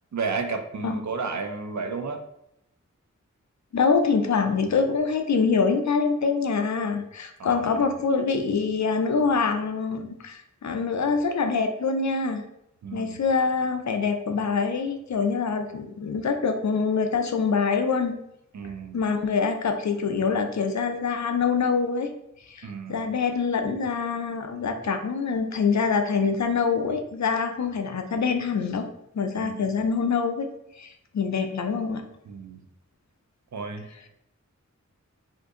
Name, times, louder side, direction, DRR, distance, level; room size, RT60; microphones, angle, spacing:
voice 1, 0.1-2.2 7.4-8.0 12.8-13.2 18.5-19.0 22.6-23.1 29.4-29.8 32.3-32.6 33.5-34.1, right 4 dB, 70° right, 6 dB, 0.4 m, -33 dB
voice 2, 3.7-12.4 12.9-18.2 18.9-22.1 22.5-28.9 29.1-30.5 30.8-32.0, left 5 dB, 65° left, 6 dB, 0.4 m, -25 dB
2.6 x 2.5 x 3.6 m, 0.80 s
wide cardioid pair, 60°, 30 cm